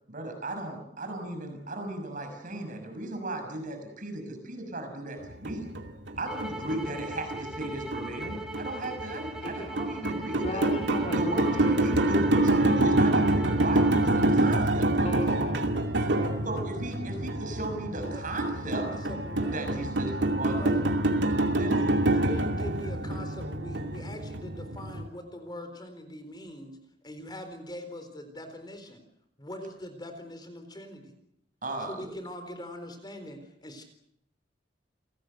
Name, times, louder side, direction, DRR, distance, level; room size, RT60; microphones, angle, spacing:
voice 1, 0.1-5.7 6.2-10.6 11.2-15.1 16.4-18.9 19.5-20.7 21.6-21.7 31.6-32.1, right 2 dB, 50° right, 5 dB, 6.1 m, -36 dB
sound 1, 5.2-25.1, right 1 dB, 85° right, 2.5 m, -27 dB
sound 2, 6.3-14.6, right 1 dB, 5° right, 3.3 m, -41 dB
voice 2, 10.4-11.7 15.0-15.6 15.9-16.4, left 1 dB, 40° left, 1 dB, 4.0 m, -36 dB
voice 3, 18.6-19.9 20.4-20.8 21.7-29.0 29.4-31.1 31.9-33.8, left 1 dB, 25° left, 7 dB, 4.1 m, -42 dB
30.0 x 18.0 x 8.0 m, 0.74 s
head